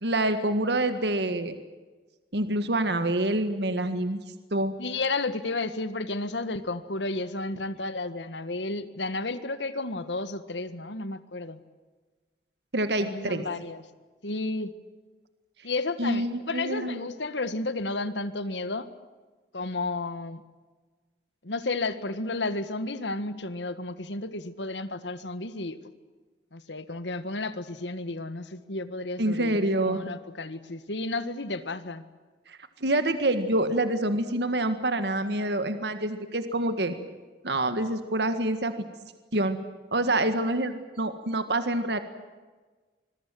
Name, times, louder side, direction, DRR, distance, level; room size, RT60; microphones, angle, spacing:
voice 1, 0.0-1.6 2.3-4.2 4.5-4.7 12.7-13.4 16.0-17.0 29.2-30.0 32.5-36.9 37.4-38.7 39.3-39.6 39.9-42.0, right 1 dB, 70° right, 9 dB, 1.8 m, -26 dB
voice 2, 4.8-11.6 13.0-13.8 14.2-14.7 15.6-18.9 19.5-20.4 21.4-25.8 26.5-32.0, left 2 dB, 85° left, 12 dB, 1.7 m, -32 dB
26.0 x 22.5 x 7.8 m, 1.3 s
head